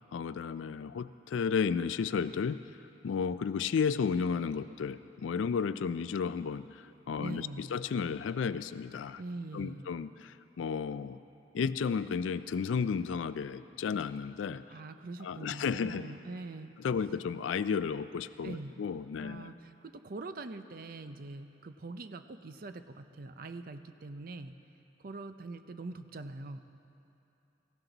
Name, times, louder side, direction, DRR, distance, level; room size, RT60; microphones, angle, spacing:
voice 1, 0.0-9.2 9.5-11.2 11.5-14.6 15.2-16.1 16.8-19.5, left 6 dB, 80° left, 14 dB, 0.4 m, -33 dB
voice 2, 7.2-7.7 9.2-9.9 14.7-16.7 18.4-18.7 19.2-24.5 25.0-26.6, right 2 dB, 50° right, 10 dB, 0.6 m, -43 dB
18.5 x 15.5 x 4.0 m, 2.8 s
head